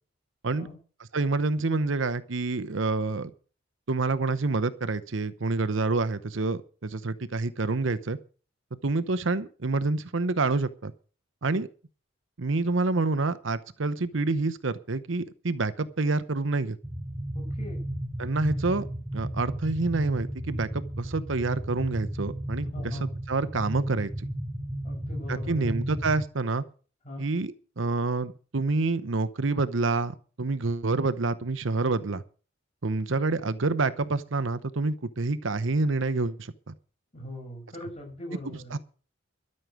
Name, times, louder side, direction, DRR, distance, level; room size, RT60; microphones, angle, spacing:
voice 1, 1.1-3.3 3.9-8.2 8.8-10.9 11.4-11.7 12.4-16.8 18.2-18.9 19.1-23.0 23.3-24.3 25.3-26.6 27.2-32.2 32.8-36.7 38.7-38.8, right 3 dB, 65° right, 0.8 m, -27 dB
sound 1, 16.8-26.3, right 1 dB, 10° right, 0.8 m, -34 dB
voice 2, 17.3-17.8 22.7-23.1 24.8-25.8 27.0-27.3 37.1-38.7, left 1 dB, 30° left, 6.3 m, -41 dB
13.0 x 6.5 x 9.2 m
head